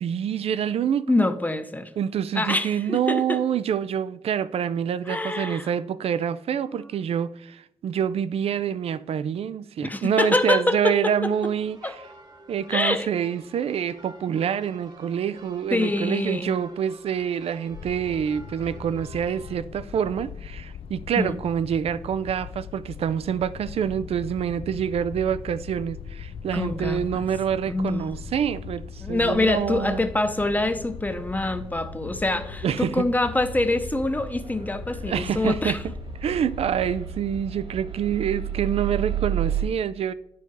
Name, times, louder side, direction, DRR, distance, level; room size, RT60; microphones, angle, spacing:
voice 1, 0.0-1.3 2.0-12.0 12.5-30.0 32.6-33.1 35.1-35.9 36.2-40.1, right 8 dB, 80° right, 0.4 m, -26 dB
voice 2, 1.1-1.9 2.3-3.4 5.1-5.7 6.8-6.9 9.8-11.5 11.8-11.9 12.7-13.1 15.7-16.6 21.2-21.4 26.5-27.2 27.7-28.2 29.0-35.8, left 2 dB, 15° left, 0.7 m, -25 dB
sound 1, 11.3-19.5, right 2 dB, 40° right, 1.1 m, -48 dB
sound 2, 17.7-37.0, left 7 dB, 70° left, 0.4 m, -40 dB
sound 3, 23.3-39.6, right 9 dB, 65° right, 2.1 m, -36 dB
9.7 x 4.7 x 4.6 m
cardioid pair, 80°, 10 cm